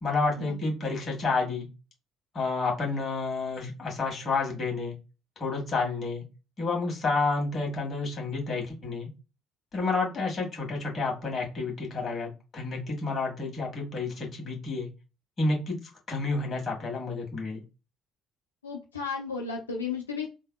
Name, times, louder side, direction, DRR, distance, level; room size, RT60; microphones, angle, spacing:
voice 1, 0.0-1.7 2.3-5.0 5.4-6.2 6.6-9.1 9.7-14.9 15.4-15.8 16.1-17.6, left 3 dB, 40° left, 0 dB, 1.5 m, -30 dB
voice 2, 18.6-20.3, left 5 dB, 90° left, -1 dB, 0.4 m, -34 dB
3.3 x 2.2 x 2.2 m, 0.29 s
hypercardioid pair, 50°, 0 cm